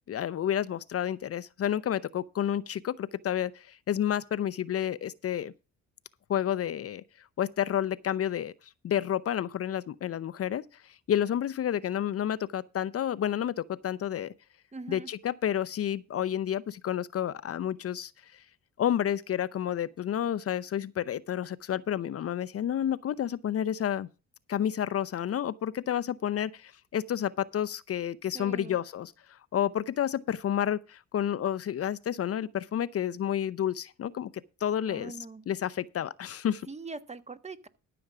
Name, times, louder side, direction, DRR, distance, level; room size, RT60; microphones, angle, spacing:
voice 1, 0.1-5.5 6.3-7.0 7.4-14.3 14.9-18.4 18.8-24.1 24.5-35.2 35.5-36.7, left 10 dB, 50° left, 0.7 m, -30 dB
voice 2, 14.7-15.1 28.3-28.8 34.9-35.4 36.7-37.7, right 3 dB, 20° right, 1.4 m, -42 dB
13.5 x 7.0 x 4.8 m
cardioid pair, 90°, 30 cm